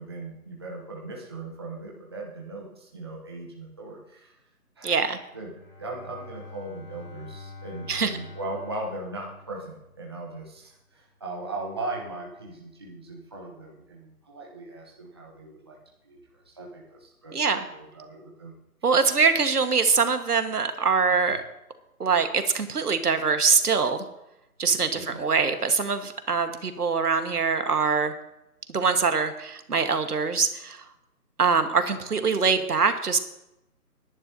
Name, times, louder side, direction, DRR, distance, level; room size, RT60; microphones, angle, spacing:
voice 1, 0.0-4.3 4.8-5.5 5.8-15.8 16.0-18.5 21.2-21.4 24.9-25.2, right 2 dB, 15° right, -3 dB, 0.9 m, -38 dB
voice 2, 4.8-5.2 7.9-8.2 17.3-17.6 18.8-21.4 22.0-24.0 24.6-28.1 28.7-30.8 31.4-33.2, right 5 dB, 70° right, 8 dB, 1.6 m, -23 dB
Bowed string instrument, 5.4-10.3, left 3 dB, 50° left, 5.0 m, -45 dB
20.5 x 10.5 x 2.8 m, 0.87 s
hypercardioid pair, 170°, 47 cm